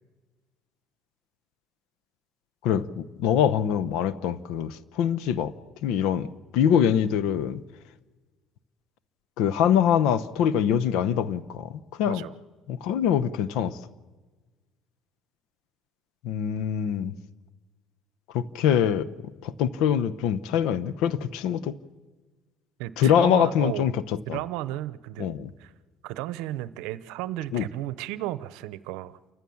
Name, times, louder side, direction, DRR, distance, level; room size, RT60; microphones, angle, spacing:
voice 1, 2.6-5.5 5.8-6.3 6.5-7.6 9.4-11.7 12.0-12.2 12.7-13.8 16.2-17.1 18.3-19.1 19.4-21.7 23.0-24.0 24.3-24.4 25.2-25.5 27.5-27.7, left 9 dB, 80° left, 0.9 m, -24 dB
voice 2, 12.1-12.4 22.8-23.9 24.3-25.3 25.6-25.7 26.0-29.2, right 15 dB, 85° right, 0.7 m, -34 dB
28.5 x 14.5 x 7.1 m
supercardioid pair, 90°, 0 cm